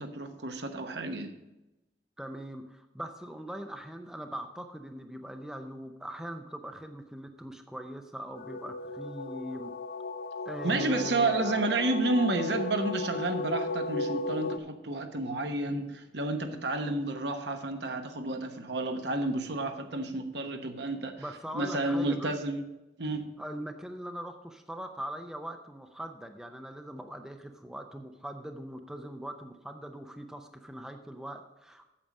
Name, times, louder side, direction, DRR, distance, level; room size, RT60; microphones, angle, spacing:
voice 1, 0.0-1.3 10.6-21.2 21.5-22.6 23.0-23.3, right 2 dB, 70° right, 6 dB, 1.1 m, -31 dB
voice 2, 2.2-9.7 10.4-11.6 21.2-22.4 23.4-31.9, right 1 dB, 5° right, 5 dB, 0.5 m, -41 dB
sound 1, 8.3-14.6, left 2 dB, 50° left, 0.4 m, -35 dB
8.8 x 7.4 x 5.3 m, 0.97 s
head